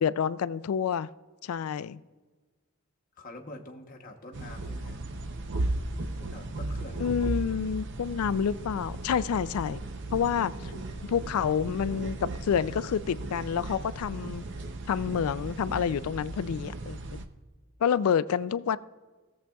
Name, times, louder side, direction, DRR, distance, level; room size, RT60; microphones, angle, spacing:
voice 1, 0.0-1.1 1.4-2.0 7.0-9.8 10.1-10.7 11.1-14.4 14.9-17.2 17.8-18.8, left 7 dB, 75° left, 17 dB, 0.3 m, -28 dB
voice 2, 3.2-5.0 6.2-7.1 10.5-11.1, left 1 dB, 40° left, 1 dB, 0.9 m, -46 dB
sound 1, 4.3-17.2, right 2 dB, 55° right, 0.6 m, -36 dB
17.0 x 7.4 x 2.3 m, 1.3 s
head